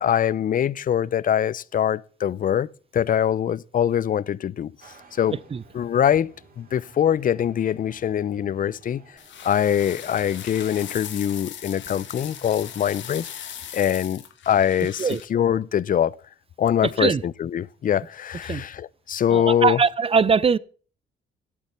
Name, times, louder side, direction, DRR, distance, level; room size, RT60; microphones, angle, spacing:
voice 1, 0.0-4.7 5.1-5.4 5.7-9.0 9.4-13.3 13.7-16.2 16.6-19.9, left 9 dB, 45° left, 0.5 m, -23 dB
sound 1, 4.8-13.8, right 3 dB, 45° right, 3.6 m, -53 dB
sound 2, 9.2-15.3, left 9 dB, 70° left, 1.7 m, -39 dB
voice 2, 19.3-20.6, right 5 dB, 30° right, 0.6 m, -21 dB
11.5 x 8.4 x 6.9 m
cardioid pair, 90°, 20 cm